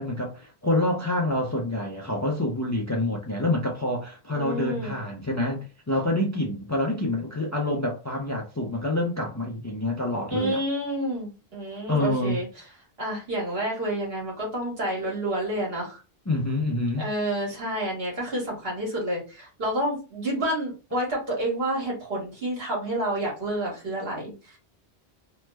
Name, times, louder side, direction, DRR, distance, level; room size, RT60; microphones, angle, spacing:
voice 1, 0.0-10.6 11.9-12.4 16.3-17.1, left 1 dB, 25° left, 0.4 m, -27 dB
voice 2, 4.3-5.0 10.3-12.5 13.0-16.0 17.0-24.6, right 1 dB, 75° right, 1.7 m, -29 dB
3.1 x 2.1 x 3.2 m
omnidirectional pair, 1.0 m